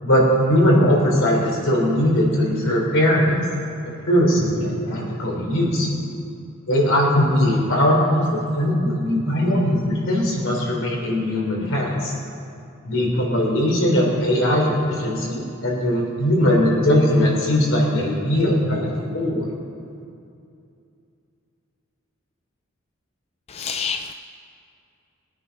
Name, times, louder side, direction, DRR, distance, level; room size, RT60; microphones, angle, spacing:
voice 1, 0.0-3.4 3.9-5.9 6.7-12.1 12.9-19.5, equal, 65° left, -2 dB, 3.7 m, -20 dB
voice 2, 23.5-24.1, left 6 dB, 30° left, 8 dB, 0.3 m, -27 dB
21.5 x 9.0 x 5.4 m, 2.6 s
head